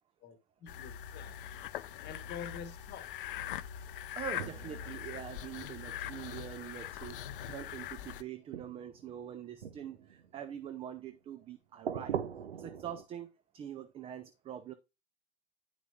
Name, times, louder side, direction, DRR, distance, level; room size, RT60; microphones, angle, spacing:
voice 1, 0.2-1.4 2.0-3.1, left 7 dB, 30° left, 1.3 m, -46 dB
sound 1, 0.7-8.2, left 11 dB, 55° left, 0.6 m, -42 dB
sound 2, 2.0-2.1 4.4-6.5 7.5-8.0 8.5-11.1 11.8-13.0, right 8 dB, 70° right, 0.8 m, -43 dB
voice 2, 4.1-7.2 7.5-12.2 12.5-13.3 13.5-14.7, right 10 dB, 20° right, 0.5 m, -44 dB
10.0 x 6.2 x 2.3 m
figure-of-eight pair, 95°, 32 cm